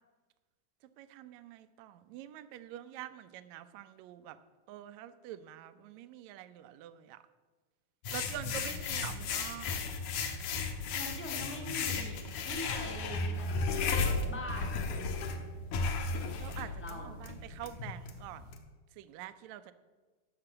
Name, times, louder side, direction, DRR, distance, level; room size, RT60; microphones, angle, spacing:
voice 1, 1.0-4.4 4.7-7.2 8.1-9.8 16.4-18.5 18.9-19.7, right 12 dB, 75° right, 12 dB, 1.8 m, -46 dB
sound 1, 8.0-18.6, left 4 dB, 75° left, 2.6 m, -35 dB
voice 2, 8.4-9.2 10.9-13.6 14.2-14.8 16.6-17.2, equal, 5° left, 2 dB, 1.3 m, -44 dB
15.0 x 6.0 x 7.7 m, 1.3 s
omnidirectional pair, 3.6 m